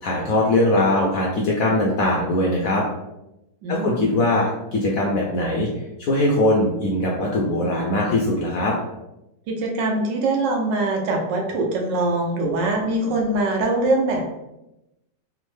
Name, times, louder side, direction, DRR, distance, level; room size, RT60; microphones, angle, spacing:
voice 1, 0.0-2.8 3.7-5.7 6.0-8.7, left 1 dB, 75° left, -3 dB, 0.8 m, -21 dB
voice 2, 3.6-4.1 9.5-14.3, right 2 dB, 80° right, 1 dB, 1.3 m, -23 dB
3.5 x 2.0 x 3.1 m, 0.91 s
omnidirectional pair, 1.9 m